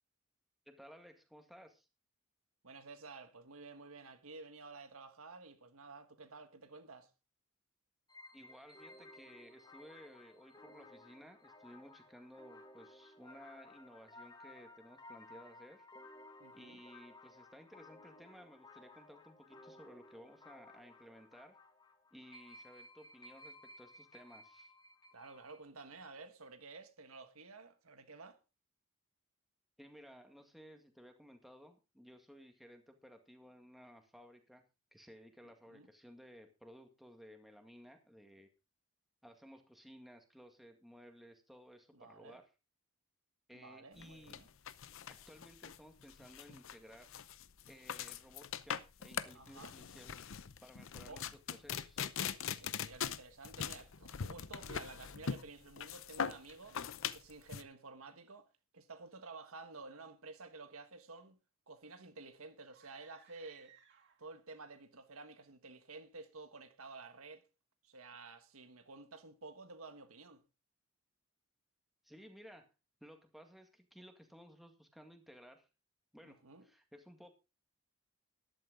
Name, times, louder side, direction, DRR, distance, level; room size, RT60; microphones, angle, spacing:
voice 1, 0.7-1.9 8.3-15.9 16.5-21.6 22.1-24.7 29.8-34.6 34.9-38.5 39.2-42.4 43.5-44.4 45.1-47.2 47.7-50.1 50.6-51.2 51.5-52.0 72.0-72.7 73.0-75.7 76.1-77.3, equal, ahead, 2.0 m, -57 dB
voice 2, 2.6-7.1 16.4-16.8 25.1-28.4 35.7-35.9 41.9-42.4 43.5-44.5 49.3-49.7 51.1-51.2 52.6-56.8 57.1-58.5 58.7-61.4 61.7-63.7 64.2-67.4 67.8-70.4 76.2-76.6, right 3 dB, 75° right, 1.6 m, -52 dB
sound 1, 8.1-25.6, left 2 dB, 20° left, 1.8 m, -57 dB
sound 2, 44.0-57.6, left 7 dB, 65° left, 0.7 m, -42 dB
sound 3, 62.7-64.5, right 7 dB, 55° right, 2.3 m, -64 dB
13.5 x 11.5 x 3.8 m
head